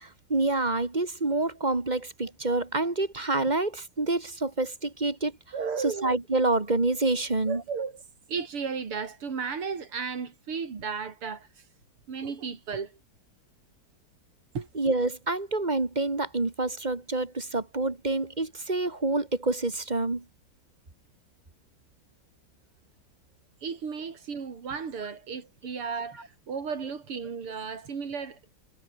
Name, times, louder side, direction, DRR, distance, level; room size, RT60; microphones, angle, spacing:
voice 1, 0.0-5.3 5.8-7.6 14.8-20.2, right 2 dB, 20° right, 2.0 m, -27 dB
voice 2, 5.5-6.1 7.5-8.0 8.3-11.5 12.1-13.0 14.5-14.7 23.6-28.5, right 5 dB, 80° right, 3.9 m, -34 dB
omnidirectional pair, 2.4 m